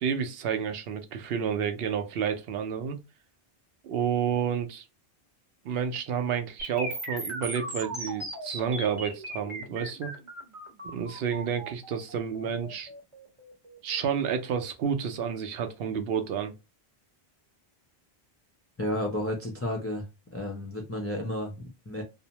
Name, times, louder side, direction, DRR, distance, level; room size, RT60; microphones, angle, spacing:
voice 1, 0.0-3.0 3.8-4.8 5.6-10.1 10.8-12.9 13.8-16.5, right 7 dB, 75° right, 0.8 m, -30 dB
sound 1, 6.6-14.6, right 1 dB, 35° right, 0.8 m, -38 dB
voice 2, 18.8-20.1 20.3-22.0, left 1 dB, 25° left, 0.3 m, -32 dB
2.6 x 2.0 x 2.8 m
omnidirectional pair, 1.0 m